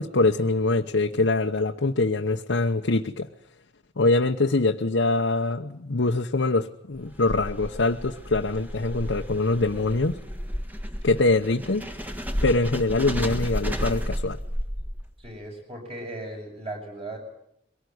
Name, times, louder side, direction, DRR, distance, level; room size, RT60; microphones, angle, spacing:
voice 1, 0.0-3.3 4.0-10.2 11.0-11.9 12.4-14.4, left 2 dB, 85° left, 3 dB, 0.9 m, -24 dB
sound 1, 7.0-15.3, equal, 10° right, 1.6 m, -32 dB
voice 2, 15.2-17.2, right 1 dB, 30° right, 2 dB, 6.8 m, -37 dB
23.0 x 18.0 x 9.5 m, 0.76 s
head